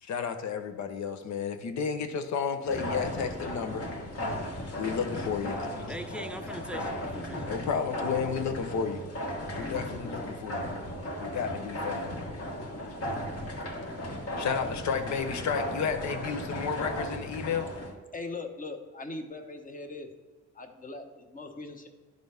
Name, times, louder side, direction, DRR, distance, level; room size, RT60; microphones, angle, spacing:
voice 1, 0.0-3.8 4.8-5.8 7.5-9.0 9.5-10.7 11.2-12.2 14.4-17.7, left 6 dB, 65° left, 0.9 m, -32 dB
sound 1, 2.6-17.9, equal, 50° left, 1.4 m, -36 dB
voice 2, 5.5-7.7 9.4-9.7, right 1 dB, 5° right, 0.6 m, -43 dB
voice 3, 18.1-20.1 20.5-21.9, left 3 dB, 25° left, 1.0 m, -40 dB
10.5 x 4.0 x 3.4 m
cardioid pair, 90°, 30 cm